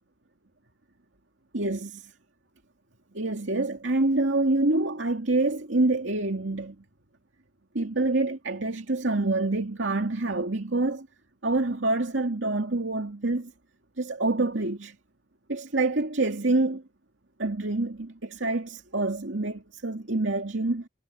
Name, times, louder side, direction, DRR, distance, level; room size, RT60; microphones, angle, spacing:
voice 1, 1.5-2.1 3.1-6.8 7.7-11.1 11.4-13.5 14.0-15.0 15.5-16.8 17.4-20.9, right 2 dB, 80° right, 2.4 m, -26 dB
head